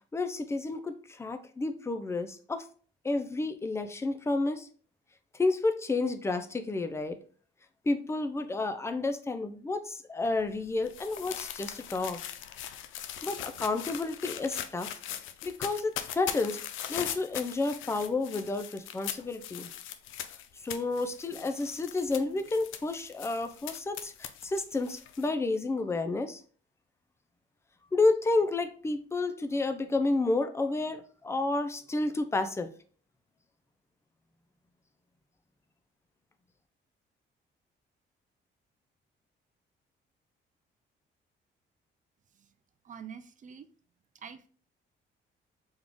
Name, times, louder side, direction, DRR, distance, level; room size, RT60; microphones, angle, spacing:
voice 1, 0.1-2.7 3.0-4.7 5.4-7.2 7.9-12.2 13.2-15.0 15.4-16.6 16.9-19.7 20.6-26.4 27.9-32.7, left 3 dB, 15° left, 7 dB, 0.4 m, -30 dB
sound 1, 10.2-25.3, left 10 dB, 80° left, 0.4 m, -40 dB
voice 2, 42.8-43.7 44.1-44.5, right 7 dB, 40° right, 11 dB, 0.4 m, -45 dB
3.6 x 2.4 x 3.5 m, 0.43 s
cardioid pair, 90°, 20 cm